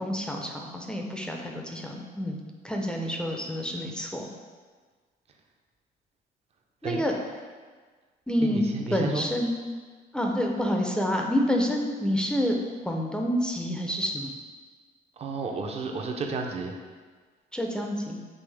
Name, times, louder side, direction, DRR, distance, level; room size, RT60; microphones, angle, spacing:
voice 1, 0.0-2.4 2.6-4.3 6.8-7.2 8.3-8.6 8.9-9.5 10.1-12.6 12.8-14.3 17.5-18.2, equal, 5° left, 1 dB, 0.5 m, -28 dB
voice 2, 8.4-9.3 15.2-16.8, right 3 dB, 40° right, 3 dB, 0.6 m, -32 dB
5.3 x 2.9 x 3.3 m, 1.5 s
cardioid pair, 110°, 17 cm